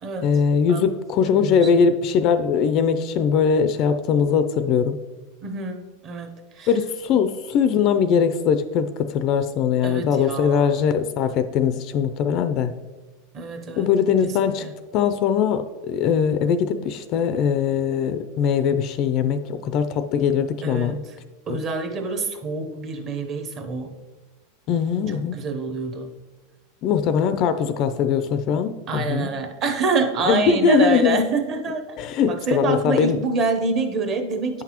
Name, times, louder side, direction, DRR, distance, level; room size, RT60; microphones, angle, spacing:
voice 1, 0.2-5.0 6.7-12.7 13.8-14.7 14.9-21.0 21.5-21.6 24.7-25.4 26.8-29.3 30.3-31.2 32.0-33.2, left 7 dB, 35° left, 10 dB, 0.3 m, -21 dB
voice 2, 1.2-1.9 5.4-6.7 9.8-10.8 13.3-13.9 14.2-14.3 14.6-14.7 20.6-21.0 21.5-23.9 25.1-26.1 28.9-31.8 32.3-34.6, right 4 dB, 25° right, 6 dB, 0.7 m, -26 dB
8.8 x 5.9 x 2.9 m, 1.2 s
supercardioid pair, 170°, 0 cm